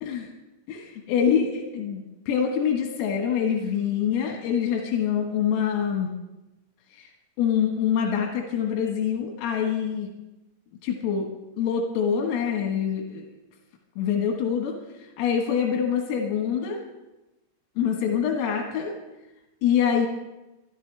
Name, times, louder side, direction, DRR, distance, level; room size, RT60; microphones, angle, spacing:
voice 1, 1.1-6.1 6.9-7.1 7.4-10.1 10.8-11.3 11.6-13.3 14.0-16.8 17.8-18.9 19.6-20.1, left 8 dB, 85° left, 1 dB, 4.3 m, -25 dB
24.5 x 12.0 x 3.4 m, 1.0 s
omnidirectional pair, 5.9 m